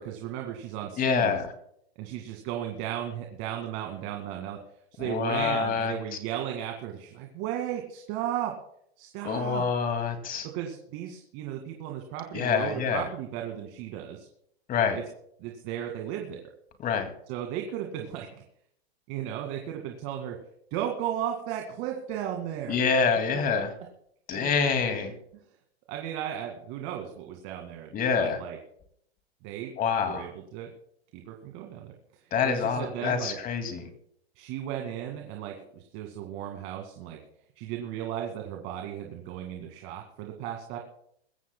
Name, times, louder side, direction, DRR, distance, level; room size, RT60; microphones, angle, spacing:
voice 1, 0.0-1.4 2.0-4.6 4.9-8.5 9.0-9.6 10.5-14.3 15.4-16.4 17.3-18.3 19.1-20.4 20.7-22.8 24.3-24.5 24.9-25.1 25.9-27.9 28.2-28.6 29.4-29.7 30.1-30.7 31.1-31.9 32.4-33.4 34.4-37.2 37.6-40.8, right 10 dB, 40° right, 2 dB, 2.1 m, -35 dB
voice 2, 1.0-1.5 5.0-5.9 9.2-10.5 12.3-13.0 14.7-15.0 16.8-17.1 22.7-23.7 24.3-25.1 27.9-28.4 29.8-30.2 32.3-33.9, left 6 dB, 25° left, 7 dB, 2.3 m, -26 dB
23.0 x 14.0 x 2.2 m, 0.70 s
hypercardioid pair, 120°, 32 cm